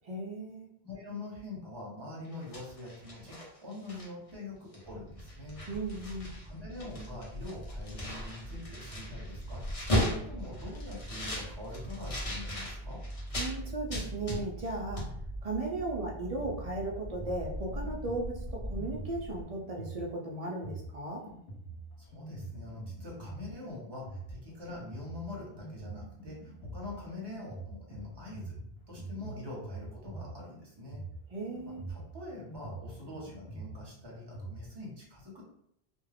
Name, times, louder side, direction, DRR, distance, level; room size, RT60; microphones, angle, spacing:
voice 1, 0.1-0.7 5.7-6.3 13.4-15.1 15.4-21.2 31.3-31.9, right 2 dB, 50° right, -1 dB, 0.4 m, -36 dB
voice 2, 0.8-3.4 3.6-5.6 6.3-13.0 22.0-28.5 28.9-31.0 31.7-35.4, left 2 dB, 25° right, -3 dB, 0.8 m, -44 dB
sound 1, 2.2-4.3 4.7-4.9 5.2-6.4 6.7-13.5 13.9-14.7 15.0-15.1, equal, 40° left, 0.7 m, -36 dB
sound 2, 4.8-19.4, right 1 dB, 60° left, 0.9 m, -42 dB
Drum kit, 16.4-34.6, right 2 dB, 90° left, 0.9 m, -45 dB
2.3 x 2.1 x 3.3 m, 0.72 s
omnidirectional pair, 1.0 m